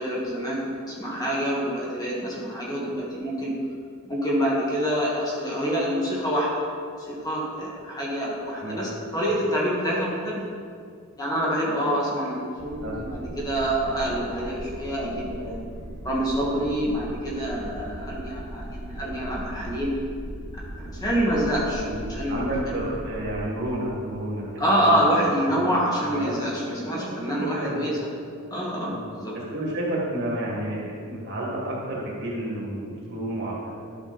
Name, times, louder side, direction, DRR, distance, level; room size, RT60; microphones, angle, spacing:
voice 1, 0.0-3.5 4.0-6.5 7.1-10.4 11.2-15.6 16.0-19.9 20.8-22.5 24.6-28.1 28.5-29.3, equal, 15° left, -6 dB, 1.7 m, -26 dB
voice 2, 8.6-8.9 12.8-13.0 21.7-25.0 25.4-25.7 26.1-26.4 26.9-27.9 28.9-29.0 29.5-33.9, right 1 dB, 50° right, -4 dB, 2.3 m, -31 dB
sound 1, 12.6-23.3, right 1 dB, 70° right, 1.0 m, -38 dB
11.0 x 6.3 x 4.1 m, 2.3 s
head